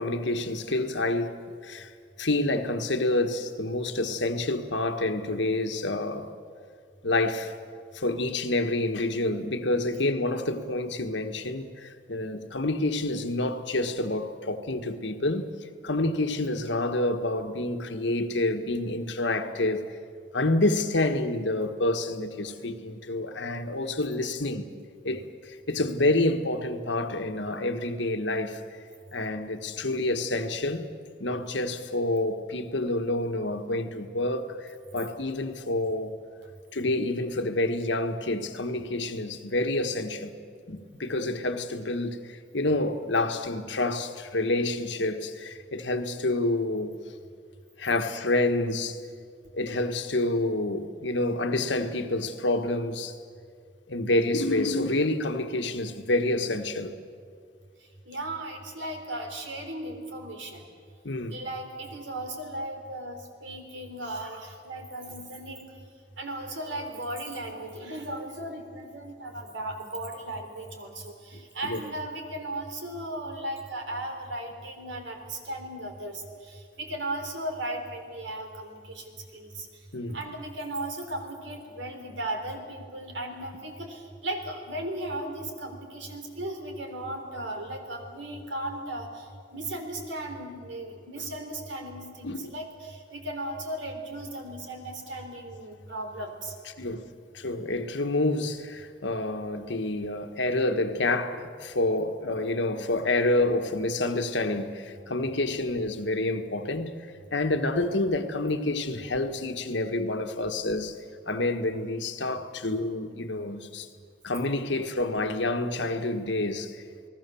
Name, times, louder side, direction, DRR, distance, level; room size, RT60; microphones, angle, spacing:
voice 1, 0.0-1.3 1.6-1.9 2.2-6.3 7.0-7.5 7.9-15.5 15.8-19.8 20.3-24.6 25.0-28.6 29.1-30.9 31.2-36.1 36.7-40.4 40.7-47.0 47.8-49.0 49.5-53.2 53.9-56.9 61.0-61.4 71.6-71.8 79.9-80.2 92.2-92.5 96.8-97.0 97.3-106.9 107.3-111.0 111.3-113.9 114.2-116.8, left 2 dB, 80° left, 1.5 m, -28 dB
voice 2, 58.1-60.6 61.3-65.7 66.2-79.7 80.1-89.1 89.5-96.5, right 1 dB, 90° right, 3.7 m, -36 dB
29.0 x 19.5 x 7.1 m
head